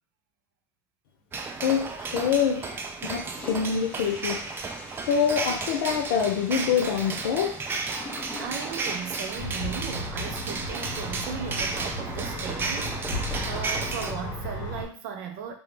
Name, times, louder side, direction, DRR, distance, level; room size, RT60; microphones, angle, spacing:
sound 1, 1.3-14.1, right 4 dB, 20° right, 0.3 m, -33 dB
voice 1, 1.6-4.4 5.1-7.6, left 7 dB, 85° left, 5 dB, 0.6 m, -26 dB
Toilet flush, 3.3-9.4, left 1 dB, 15° left, 0.7 m, -43 dB
voice 2, 8.4-15.5, right 7 dB, 75° right, 4 dB, 0.6 m, -37 dB
sound 2, 9.3-14.9, left 1 dB, 45° left, 0.9 m, -34 dB
2.9 x 2.0 x 3.3 m, 0.41 s
supercardioid pair, 125°, 11 cm